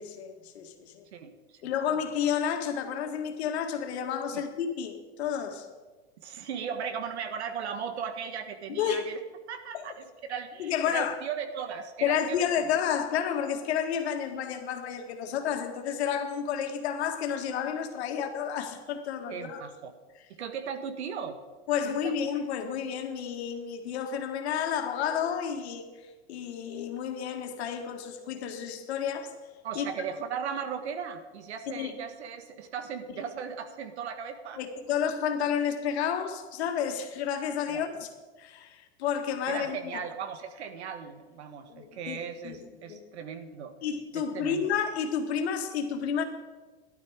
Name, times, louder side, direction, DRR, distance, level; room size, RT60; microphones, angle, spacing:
voice 1, 0.0-1.1 1.6-5.7 8.7-9.1 9.7-9.9 10.6-11.2 12.0-19.6 21.7-29.3 29.8-29.9 31.7-31.9 33.1-33.2 34.6-38.1 38.4-39.9 41.7-42.2 42.4-42.6 42.9-43.0 43.8-46.2, left 8 dB, 75° left, 5 dB, 2.0 m, -31 dB
voice 2, 1.1-1.6 6.2-9.2 9.5-12.6 19.3-19.9 20.3-21.4 21.8-22.1 29.6-34.6 37.7-37.8 39.5-43.7 44.1-44.7, right 7 dB, 85° right, 9 dB, 1.6 m, -37 dB
14.0 x 11.5 x 5.1 m, 1.3 s
supercardioid pair, 140°, 32 cm